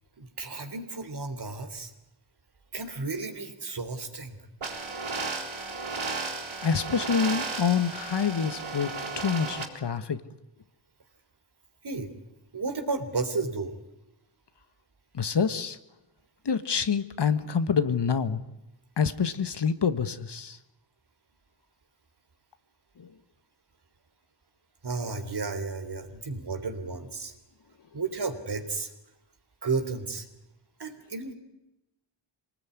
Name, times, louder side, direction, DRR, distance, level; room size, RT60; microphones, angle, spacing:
voice 1, 0.2-1.9 2.7-4.4 11.8-12.1 12.5-13.7 24.8-27.3 27.9-28.9 29.6-30.3 30.8-31.3, right 4 dB, 55° right, 7 dB, 3.6 m, -33 dB
sound 1, 4.6-9.6, right 3 dB, 75° right, 4.0 m, -34 dB
voice 2, 6.6-10.2 15.1-15.8 16.4-18.4 19.0-20.6 23.0-23.1, left 6 dB, 55° left, 11 dB, 1.5 m, -27 dB
24.5 x 19.0 x 9.6 m, 0.94 s
cardioid pair, 55°, 48 cm